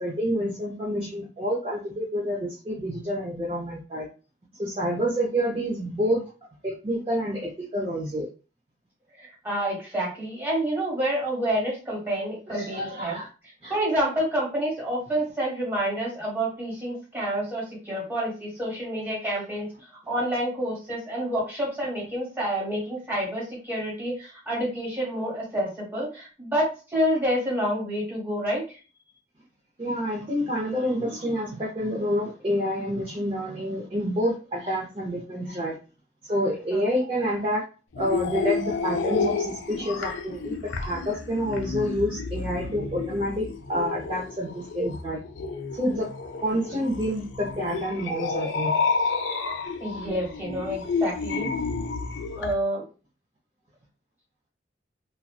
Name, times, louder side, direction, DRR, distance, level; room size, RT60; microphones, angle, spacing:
voice 1, 0.0-4.1 4.6-6.3 6.6-8.3 12.5-13.3 13.6-13.7 29.8-35.8 36.2-37.6 38.0-45.2 45.7-46.1 46.4-48.8, equal, 30° right, -4 dB, 0.4 m, -28 dB
voice 2, 9.2-13.2 13.7-19.7 20.1-28.8 36.7-36.9 49.8-51.5 52.4-52.8, equal, 10° right, -5 dB, 1.1 m, -28 dB
sound 1, 37.9-52.5, left 4 dB, 80° left, 0.4 m, -30 dB
2.6 x 2.1 x 2.2 m, 0.34 s
head